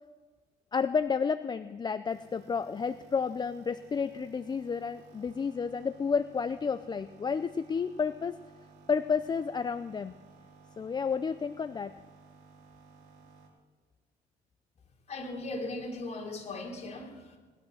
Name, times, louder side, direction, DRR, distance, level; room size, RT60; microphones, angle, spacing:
voice 1, 0.7-8.4 8.9-10.1 10.8-11.9, left 5 dB, 25° left, 12 dB, 0.5 m, -31 dB
sound 1, 2.1-13.5, right 4 dB, 75° right, 3.6 m, -57 dB
voice 2, 15.1-17.4, left 2 dB, 40° left, 1 dB, 3.5 m, -38 dB
19.5 x 11.5 x 6.5 m, 1.4 s
cardioid pair, 110°, 17 cm